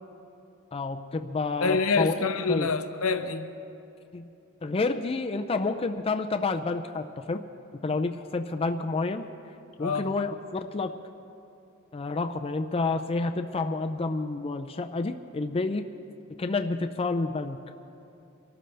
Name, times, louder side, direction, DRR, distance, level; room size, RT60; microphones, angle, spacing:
voice 1, 0.7-2.2 2.5-2.7 4.1-4.3 4.6-7.4 7.8-9.2 9.8-10.9 11.9-15.9 16.4-17.6, left 3 dB, 25° left, 6 dB, 0.4 m, -29 dB
voice 2, 1.6-3.5 9.8-10.1, left 4 dB, 75° left, 9 dB, 0.8 m, -26 dB
23.5 x 13.0 x 3.4 m, 2.9 s
head